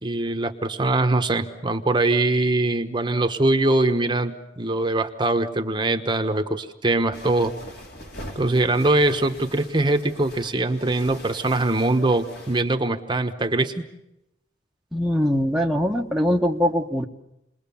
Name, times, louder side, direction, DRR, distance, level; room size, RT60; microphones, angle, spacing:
voice 1, 0.0-7.5 8.3-13.9, right 2 dB, 25° right, 6 dB, 1.2 m, -22 dB
sound 1, 7.1-12.6, equal, 60° left, 3.7 m, -42 dB
voice 2, 14.9-17.1, equal, ahead, -1 dB, 1.2 m, -22 dB
29.0 x 21.5 x 7.1 m, 0.87 s
head